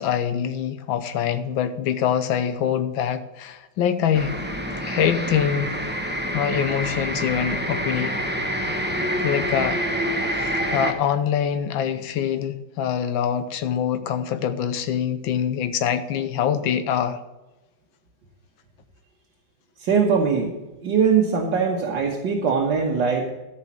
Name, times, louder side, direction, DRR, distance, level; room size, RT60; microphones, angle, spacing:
voice 1, 0.0-4.4 4.9-5.7 6.3-8.1 9.2-9.8 10.4-17.2, left 8 dB, 80° left, 10 dB, 1.6 m, -24 dB
sound 1, 4.1-10.9, equal, 15° right, 0.4 m, -27 dB
voice 2, 19.8-20.5 20.8-23.3, right 6 dB, 65° right, -1 dB, 1.9 m, -21 dB
14.0 x 5.1 x 7.2 m, 1.1 s
omnidirectional pair, 2.1 m